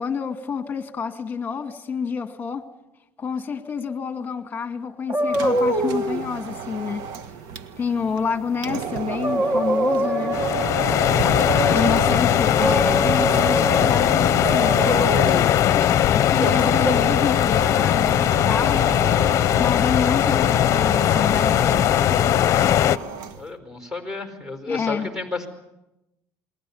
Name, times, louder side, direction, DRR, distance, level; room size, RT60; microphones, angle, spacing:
voice 1, 0.0-2.7 3.2-7.1 7.8-10.4 11.7-15.8 16.1-19.0 19.3-21.9 24.7-25.1, left 6 dB, 25° left, 2.1 m, -28 dB
sound 1, 5.1-6.2 8.7-8.8 9.1-10.8 11.3-12.2 12.6-13.9 14.4-15.5 16.4-16.9, equal, 25° right, 1.6 m, -25 dB
sound 2, 5.2-23.5, right 7 dB, 75° right, 1.7 m, -32 dB
voice 2, 8.0-8.3 11.3-12.2 23.4-25.5, left 3 dB, 10° right, 4.7 m, -33 dB
sound 3, 10.3-23.0, left 11 dB, 45° left, 0.8 m, -19 dB
29.0 x 21.5 x 7.2 m
cardioid pair, 130°, 7 cm